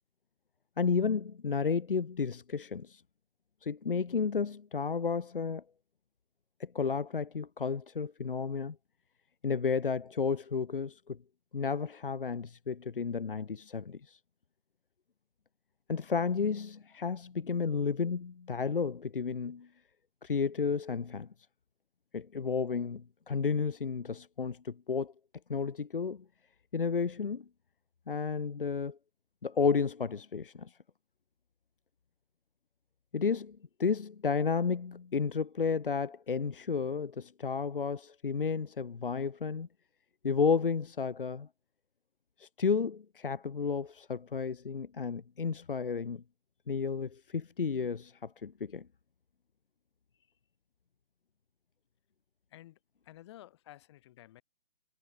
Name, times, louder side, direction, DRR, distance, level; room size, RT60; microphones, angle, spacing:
voice 1, 0.8-3.0 3.6-5.6 6.6-8.8 9.4-11.2 11.5-14.2 15.9-19.7 20.2-21.3 22.1-25.1 25.5-26.2 26.7-27.4 28.1-29.0 29.4-30.8 33.1-39.7 40.2-41.5 42.4-46.2 46.7-48.9, left 5 dB, 60° left, 1.3 m, -32 dB
voice 2, 53.0-54.4, left 14 dB, 25° left, 3.4 m, -53 dB
figure-of-eight pair, 140°, 31 cm